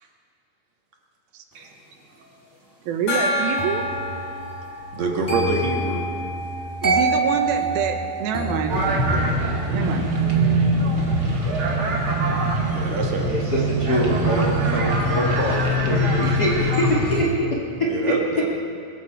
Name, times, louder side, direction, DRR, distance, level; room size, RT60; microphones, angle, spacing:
voice 1, 2.9-3.8 6.8-8.8 9.7-10.0, right 6 dB, 80° right, 5 dB, 2.8 m, -26 dB
Gong, 3.1-6.3, left 1 dB, 65° left, 5.9 m, -28 dB
sound 1, 3.6-14.5 14.8-15.2, right 3 dB, 10° right, 1.0 m, -29 dB
voice 2, 4.9-6.1 12.7-13.3 17.9-18.5, right 3 dB, 55° right, 0 dB, 2.4 m, -26 dB
sound 2, 8.7-17.2, right 1 dB, 40° right, 2.2 m, -22 dB
voice 3, 13.3-17.5 18.0-18.1, equal, 40° left, -3 dB, 1.5 m, -24 dB
22.0 x 13.5 x 4.6 m, 2.3 s
omnidirectional pair, 4.4 m